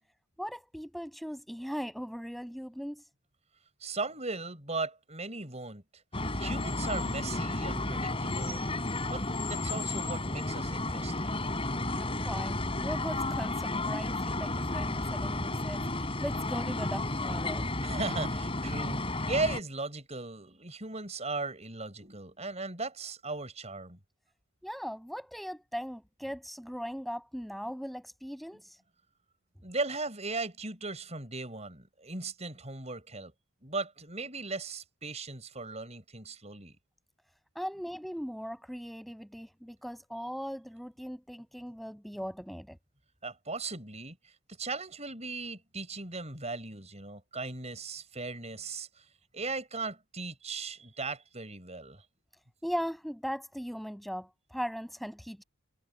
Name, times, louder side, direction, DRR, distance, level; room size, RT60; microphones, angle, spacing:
voice 1, 0.4-3.1 12.0-17.7 24.6-28.8 37.5-42.8 52.6-55.4, equal, ahead, 6.1 m, -39 dB
voice 2, 3.8-6.0 6.4-8.7 9.1-9.2 9.5-11.4 17.8-24.0 28.5-28.7 29.6-33.3 33.6-36.8 43.2-44.3 44.6-49.1 49.3-52.0, right 3 dB, 30° right, 6.6 m, -37 dB
sound 1, 6.1-19.6, left 2 dB, 25° left, 4.2 m, -32 dB
head